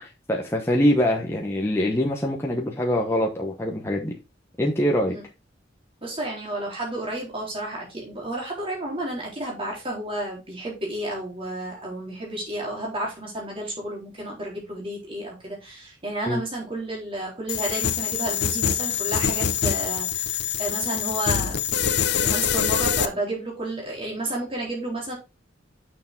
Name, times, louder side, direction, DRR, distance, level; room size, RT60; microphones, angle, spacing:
voice 1, 0.0-4.2 4.6-5.1 16.3-16.4, equal, 15° left, 1.1 m, -24 dB
voice 2, 6.0-21.6 22.1-25.1, right 1 dB, 30° right, 3.9 m, -31 dB
sound 1, 17.5-23.1, left 8 dB, 60° left, 0.6 m, -24 dB
6.8 x 6.5 x 3.9 m
head